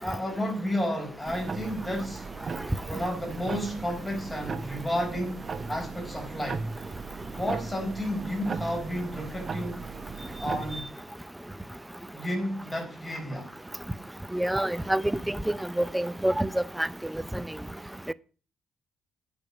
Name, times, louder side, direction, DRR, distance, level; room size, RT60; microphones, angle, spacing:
voice 1, 0.0-2.3 2.9-6.7 7.4-9.9 10.4-10.9 12.1-13.5, equal, 15° left, 4.5 m, -32 dB
Timex Office Clock Front Perspective, 1.2-10.8, right 4 dB, 40° right, 1.2 m, -37 dB
voice 2, 14.3-15.4 15.8-16.5 16.8-16.9 17.3-17.4 18.1-18.2, right 1 dB, 5° right, 0.5 m, -26 dB
10.5 x 5.4 x 8.3 m
cardioid pair, 90°, 0 cm